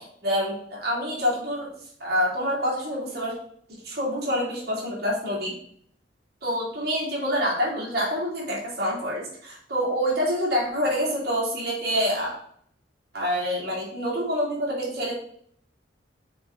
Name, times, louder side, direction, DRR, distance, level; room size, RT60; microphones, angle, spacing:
voice 1, 0.0-1.7 2.0-3.3 3.8-5.5 6.4-12.3 13.1-15.1, equal, 60° right, -5 dB, 2.7 m, -27 dB
7.3 x 3.8 x 3.8 m, 0.65 s
head